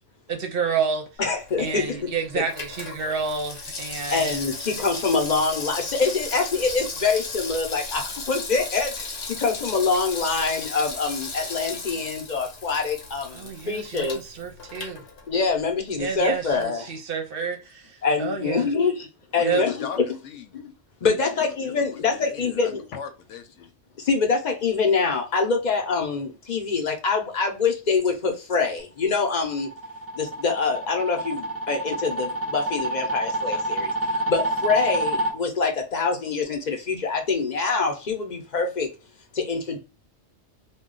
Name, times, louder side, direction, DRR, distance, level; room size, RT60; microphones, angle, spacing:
voice 1, 0.3-1.1 1.6-4.5 13.3-15.0 16.0-18.7 19.4-19.6, right 5 dB, 55° right, 0.8 m, -29 dB
voice 2, 1.2-2.0 2.4-2.5 4.1-14.2 15.3-16.9 18.0-19.1 19.3-20.1 20.5-20.7 21.0-22.8 24.0-29.7 30.2-38.9 39.3-39.8, left 4 dB, 45° left, 0.7 m, -25 dB
Water tap faucet / Sink (filling or washing), 1.4-15.7 16.0-16.1, left 3 dB, 60° left, 1.0 m, -36 dB
voice 3, 19.4-20.0 20.2-20.6 21.0-23.7 33.4-33.6, left 7 dB, 90° left, 0.9 m, -39 dB
sound 1, 29.2-35.3, right 1 dB, 15° right, 0.5 m, -28 dB
2.3 x 2.2 x 3.7 m
omnidirectional pair, 1.2 m